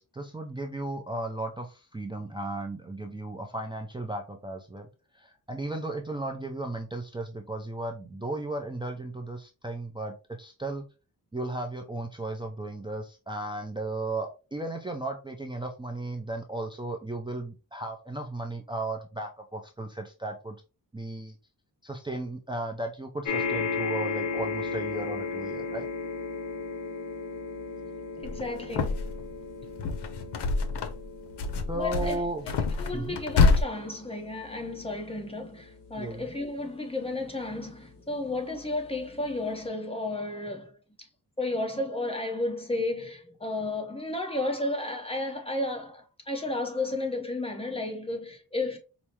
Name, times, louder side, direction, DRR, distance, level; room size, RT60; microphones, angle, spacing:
voice 1, 0.0-4.9 5.1-10.9 11.3-20.6 20.9-21.4 21.8-25.9 31.7-32.5 32.9-33.2 36.0-36.2, right 2 dB, 10° right, 0.5 m, -35 dB
sound 1, 23.2-37.8 38.6-38.7 38.9-39.0, left 4 dB, 50° left, 0.9 m, -36 dB
sound 2, 28.2-29.3 29.6-31.1 31.4-33.6, left 4 dB, 85° left, 0.6 m, -26 dB
voice 2, 28.2-29.1 31.7-32.2 32.8-40.7 41.4-48.8, left 2 dB, 15° left, 0.8 m, -33 dB
4.7 x 2.0 x 2.8 m
wide cardioid pair, 95°, 40 cm